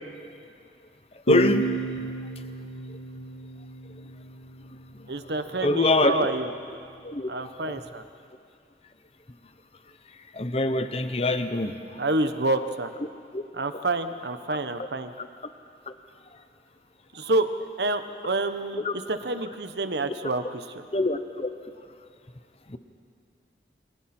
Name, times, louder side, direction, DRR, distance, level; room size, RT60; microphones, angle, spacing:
sound 1, 1.3-4.7, right 2 dB, 65° left, 1.5 m, -30 dB
voice 1, 1.3-1.7 2.9-3.0 5.6-6.3 7.0-7.3 7.6-7.8 10.3-12.0 13.3-13.4 15.2-15.3 15.9-16.0 18.8-18.9 20.9-21.5 22.7-22.8, left 2 dB, 35° left, 9 dB, 0.9 m, -25 dB
voice 2, 5.1-6.5 7.3-8.0 12.0-12.9 13.5-15.1 17.1-17.5 17.8-20.9, right 2 dB, 75° right, 9 dB, 1.1 m, -28 dB
28.5 x 25.5 x 4.4 m, 2.4 s
head